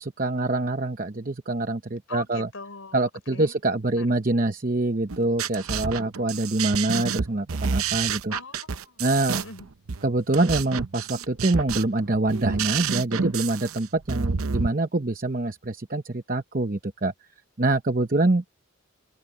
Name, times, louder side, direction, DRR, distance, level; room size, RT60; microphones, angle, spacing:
voice 1, 0.0-2.5 2.9-8.3 9.0-9.4 10.0-17.1 17.6-18.5, right 2 dB, 40° right, 0.9 m, -25 dB
voice 2, 2.1-3.0 3.3-3.5 4.0-4.1 8.3-9.0 9.3-9.7, left 3 dB, 75° left, 4.2 m, -41 dB
sound 1, 5.1-14.7, right 5 dB, 90° right, 0.8 m, -29 dB
head